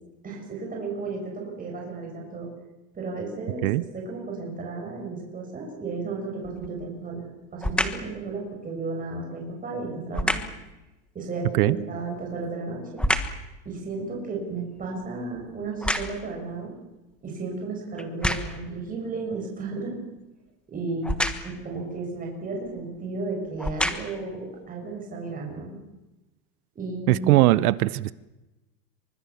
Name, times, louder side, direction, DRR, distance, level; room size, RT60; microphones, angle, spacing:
voice 1, 0.2-2.5 2.9-7.2 7.5-10.4 11.1-13.0 13.6-16.7 17.2-20.0 20.7-21.1 21.4-25.8 26.7-27.3, right 3 dB, 15° right, 0 dB, 6.7 m, -33 dB
sound 1, 6.4-6.8 7.6-8.1 10.1-10.6 12.0-13.5 13.9-16.4 17.1-17.2 18.0-18.7 21.0-21.6 22.6-22.8 23.5-24.3 24.9-25.0, left 1 dB, ahead, 1.3 m, -29 dB
voice 2, 27.1-28.1, right 16 dB, 65° right, 18 dB, 1.0 m, -20 dB
25.5 x 25.0 x 7.2 m, 1.0 s
supercardioid pair, 150°, 48 cm